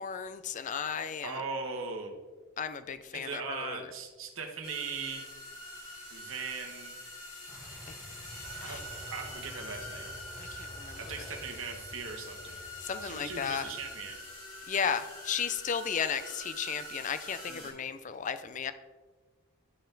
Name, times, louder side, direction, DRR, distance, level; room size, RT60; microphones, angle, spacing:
voice 1, 0.0-1.4 2.6-3.8 8.6-8.8 10.4-11.0 12.8-13.7 14.7-18.7, left 7 dB, 35° left, 12 dB, 0.4 m, -34 dB
voice 2, 1.2-2.1 3.1-5.3 6.1-7.0 8.6-8.8 9.1-10.1 11.0-12.6 13.0-14.2 17.5-17.8, right 5 dB, 65° right, 2 dB, 1.2 m, -39 dB
sound 1, 4.6-17.7, left 1 dB, 75° left, 2.7 m, -45 dB
sound 2, 7.5-14.1, equal, 5° right, 1.6 m, -50 dB
12.0 x 4.3 x 3.9 m, 1.3 s
head